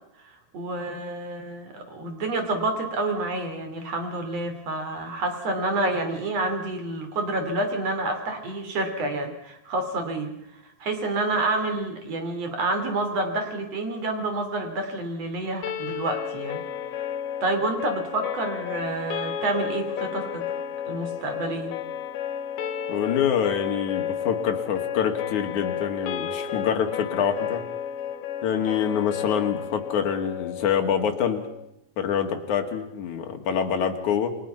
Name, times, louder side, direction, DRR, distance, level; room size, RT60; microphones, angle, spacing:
voice 1, 0.5-10.3 10.8-16.6 17.0-17.1 17.4-20.5 20.9-21.7, right 2 dB, 40° right, 6 dB, 3.7 m, -28 dB
sound 1, 15.6-31.7, left 9 dB, 85° left, 3.4 m, -32 dB
voice 2, 22.9-27.6 28.4-31.4 32.0-34.4, left 8 dB, 50° left, 4 dB, 2.9 m, -26 dB
29.5 x 23.0 x 5.7 m, 0.79 s
omnidirectional pair, 5.0 m